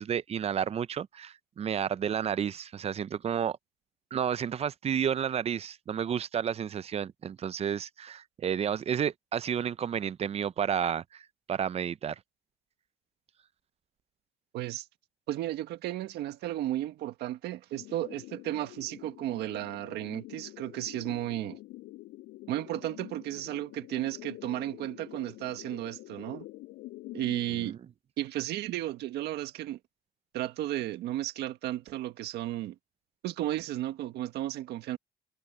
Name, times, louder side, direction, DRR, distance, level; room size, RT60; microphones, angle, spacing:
voice 1, 0.0-3.6 4.1-12.2 27.5-27.8, right 8 dB, 35° right, 0.6 m, -31 dB
voice 2, 14.5-14.9 15.3-21.6 22.5-26.5 27.1-27.8 28.2-29.8 30.3-32.8 33.2-35.0, right 14 dB, 80° right, 1.7 m, -34 dB
sound 1, 17.7-27.7, left 18 dB, 85° left, 7.3 m, -47 dB
cardioid pair, 110°, 17 cm